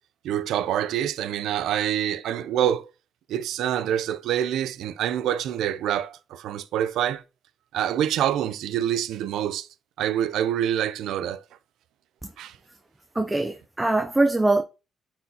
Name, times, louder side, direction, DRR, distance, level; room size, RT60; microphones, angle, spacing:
voice 1, 0.2-2.9 3.3-7.2 7.7-9.7 10.0-11.4 12.4-12.5, right 10 dB, 80° right, 0.5 m, -26 dB
voice 2, 13.2-14.6, right 2 dB, 15° right, 0.6 m, -22 dB
9.3 x 4.4 x 2.8 m
cardioid pair, 90°, 0 cm